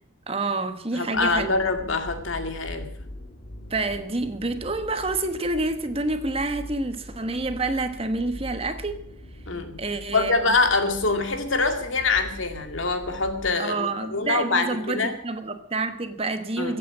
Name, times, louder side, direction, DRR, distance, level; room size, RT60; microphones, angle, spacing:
voice 1, 0.3-1.6 3.7-8.9 9.8-10.5 13.6-16.8, right 2 dB, 30° right, 9 dB, 1.2 m, -28 dB
voice 2, 0.9-2.9 9.5-9.8 10.1-15.1 16.6-16.8, left 3 dB, 75° left, 6 dB, 2.2 m, -25 dB
sound 1, 1.1-13.5, left 1 dB, 55° left, 2.2 m, -42 dB
15.5 x 8.9 x 8.5 m, 0.68 s
head